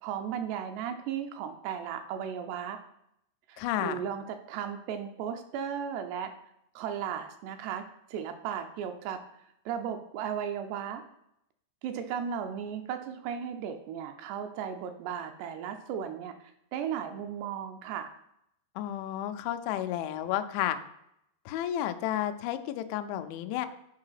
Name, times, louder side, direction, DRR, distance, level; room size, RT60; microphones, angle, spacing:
voice 1, 0.0-2.8 3.5-6.3 6.8-7.8 8.1-9.2 9.7-11.0 11.8-16.4 16.7-18.1, right 8 dB, 80° right, 6 dB, 2.6 m, -35 dB
voice 2, 3.6-4.1 18.8-20.8 21.5-23.7, left 11 dB, 85° left, 8 dB, 3.0 m, -32 dB
11.5 x 4.8 x 5.8 m, 0.77 s
omnidirectional pair, 5.2 m